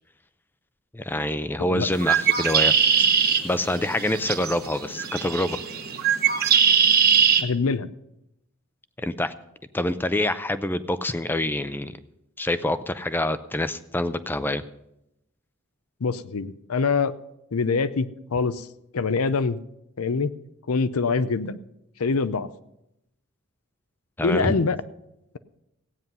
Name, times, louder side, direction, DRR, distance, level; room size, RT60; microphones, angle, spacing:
voice 1, 0.9-2.7 3.0-3.1 3.4-5.6 9.0-9.3 9.7-11.9 12.4-14.6 24.2-24.6, left 1 dB, 10° left, 13 dB, 0.5 m, -26 dB
Bird, 1.9-7.4, right 7 dB, 45° right, 1.2 m, -21 dB
voice 2, 7.4-7.9 16.0-17.1 17.5-18.1 18.3-18.7 18.9-19.6 20.0-20.3 20.7-21.6 22.0-22.5 24.2-24.8, left 4 dB, 90° left, 15 dB, 0.6 m, -24 dB
15.5 x 9.4 x 5.4 m, 0.85 s
head